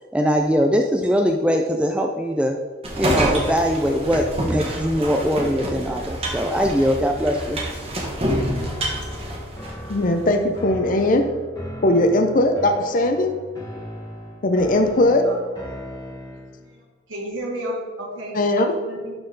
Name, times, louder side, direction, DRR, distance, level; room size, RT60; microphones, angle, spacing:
voice 1, 0.1-2.6 3.0-7.6, equal, 5° right, 3 dB, 0.3 m, -21 dB
sound 1, 2.8-10.0, right 1 dB, 30° right, 1.5 m, -27 dB
sound 2, 8.5-16.6, equal, 20° left, 1.6 m, -37 dB
voice 2, 9.9-11.2 11.8-13.3 14.4-15.2 18.3-18.7, left 1 dB, 45° left, 5 dB, 0.6 m, -19 dB
voice 3, 16.3-16.8 17.1-19.1, right 1 dB, 75° right, -2 dB, 2.1 m, -32 dB
11.5 x 4.3 x 3.9 m, 1.5 s
head